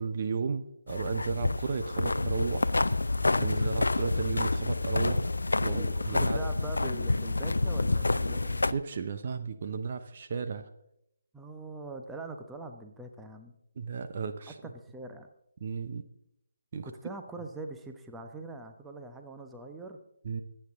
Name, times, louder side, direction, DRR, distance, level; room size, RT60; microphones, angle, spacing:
voice 1, 0.0-2.7 3.4-5.3 5.6-6.4 8.2-10.7 13.8-14.5 15.6-16.0 16.7-16.9 20.2-20.4, right 5 dB, 40° right, 8 dB, 0.9 m, -34 dB
sound 1, 0.9-8.7, left 2 dB, 75° left, 0.5 m, -28 dB
voice 2, 5.6-8.7 11.3-13.5 14.5-15.3 16.8-20.0, right 2 dB, 5° right, 4 dB, 1.0 m, -43 dB
24.5 x 8.8 x 3.7 m, 0.77 s
figure-of-eight pair, 145°, 0 cm